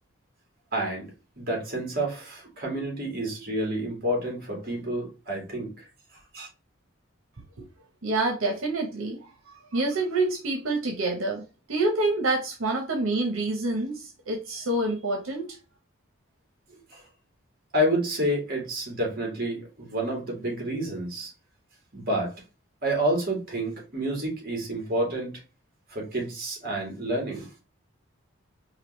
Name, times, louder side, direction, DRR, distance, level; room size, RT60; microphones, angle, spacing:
voice 1, 0.7-1.1 1.4-5.8 6.3-6.5 16.9-17.0 17.7-21.3 21.9-22.3 22.8-25.4 25.9-27.5, right 1 dB, 45° right, 1.9 m, -29 dB
voice 2, 8.0-11.4 11.7-15.5, right 2 dB, 85° right, 1.0 m, -27 dB
5.0 x 2.6 x 3.1 m
head